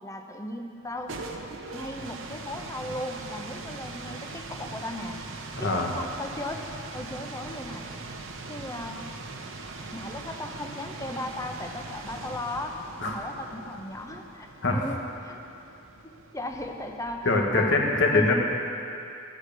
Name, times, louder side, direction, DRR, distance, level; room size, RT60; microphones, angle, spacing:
voice 1, 0.0-1.2 1.7-5.2 5.6-6.7 6.9-7.9 8.5-9.1 9.9-15.4 16.0-17.3 17.5-17.8 18.1-18.3, left 1 dB, 15° left, 3 dB, 0.8 m, -37 dB
sound 1, 0.8-17.5, right 3 dB, 75° right, 1.0 m, -41 dB
voice 2, 5.5-5.9 13.0-13.2 14.6-14.8 17.2-18.3, left 2 dB, 65° left, 0 dB, 1.7 m, -23 dB
14.0 x 8.0 x 6.8 m, 2.6 s
head